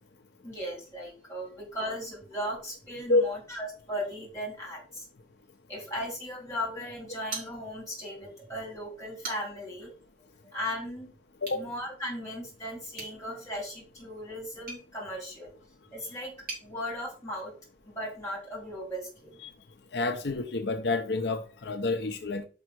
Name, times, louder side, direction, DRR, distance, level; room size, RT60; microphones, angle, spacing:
voice 1, 0.4-5.1 5.7-9.9 10.5-11.1 11.5-15.5 15.9-16.3 16.6-17.5 17.9-19.3, equal, 15° left, 4.1 m, -37 dB
sound 1, 7.3-8.1 8.4-8.5 9.0-9.7 11.4-11.7 12.9-16.7, right 3 dB, 50° right, 3.2 m, -43 dB
voice 2, 19.9-22.5, left 2 dB, 75° left, 0.7 m, -28 dB
5.6 x 5.4 x 6.1 m
head